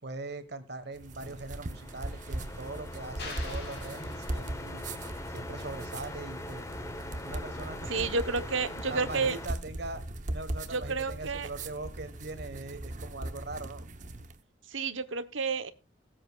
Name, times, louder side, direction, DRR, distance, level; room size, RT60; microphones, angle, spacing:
voice 1, 0.0-4.9 5.3-6.7 7.2-8.1 8.9-10.0 10.3-13.8, right 2 dB, 55° right, 12 dB, 1.4 m, -41 dB
sound 1, 0.9-14.4, right 1 dB, 40° right, 0.9 m, -40 dB
sound 2, 1.2-9.5, left 1 dB, 15° left, 1.0 m, -42 dB
sound 3, 3.2-4.9, left 3 dB, 60° left, 4.0 m, -44 dB
voice 2, 7.9-9.4 10.7-11.5 14.7-15.7, right 4 dB, 85° right, 11 dB, 1.0 m, -30 dB
19.5 x 7.8 x 2.4 m, 0.30 s
head